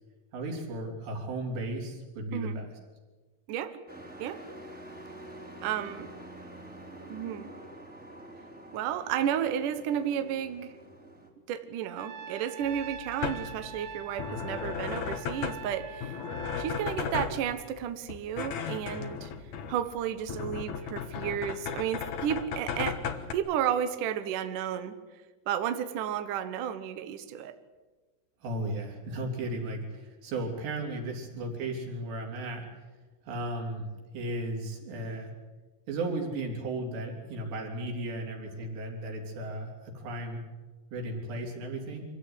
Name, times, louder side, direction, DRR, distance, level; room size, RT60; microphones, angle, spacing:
voice 1, 0.3-2.7 28.4-32.7 33.2-33.8 34.1-35.3 35.9-40.4 40.9-42.1, right 1 dB, 60° right, 1 dB, 5.7 m, -35 dB
voice 2, 3.5-3.8 4.2-4.4 5.6-6.1 7.1-7.5 8.7-10.7 11.5-16.2 16.6-19.3 19.7-23.0 23.3-24.9 25.5-27.5, right 9 dB, 80° right, 9 dB, 1.8 m, -32 dB
Truck, 3.9-11.3, right 1 dB, ahead, 2.3 m, -47 dB
Trumpet, 12.0-17.0, right 5 dB, 35° right, 3.6 m, -44 dB
sound 1, 12.6-23.3, left 7 dB, 85° left, 1.6 m, -36 dB
25.5 x 16.5 x 9.9 m, 1.3 s
omnidirectional pair, 5.7 m